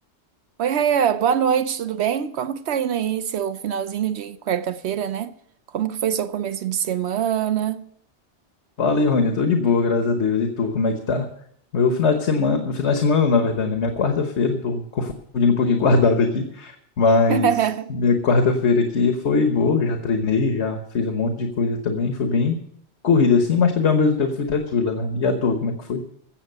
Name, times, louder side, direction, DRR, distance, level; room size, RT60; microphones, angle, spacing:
voice 1, 0.6-5.3 5.7-7.9 17.3-17.9, right 8 dB, 75° right, 0.9 m, -23 dB
voice 2, 8.8-11.3 11.7-17.5 17.9-22.6 23.0-26.0, left 4 dB, 85° left, 1.5 m, -20 dB
15.0 x 7.8 x 6.7 m
omnidirectional pair, 1.1 m